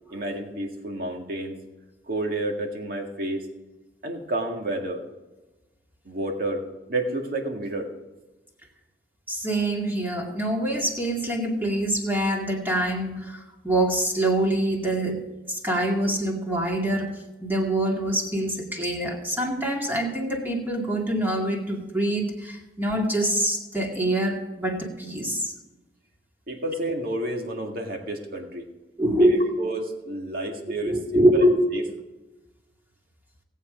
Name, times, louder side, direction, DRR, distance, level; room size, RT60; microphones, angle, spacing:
voice 1, 0.1-1.6 2.1-3.5 4.0-5.0 6.1-6.6 6.9-7.9 26.5-28.7 29.2-31.5 31.7-31.8, right 1 dB, 55° right, 2 dB, 2.0 m, -30 dB
voice 2, 9.3-13.3 13.6-15.2 15.5-17.1 17.4-25.5 29.0-29.4 30.9-31.6, right 1 dB, 10° right, 0 dB, 2.2 m, -24 dB
18.0 x 8.3 x 5.1 m, 1.1 s
head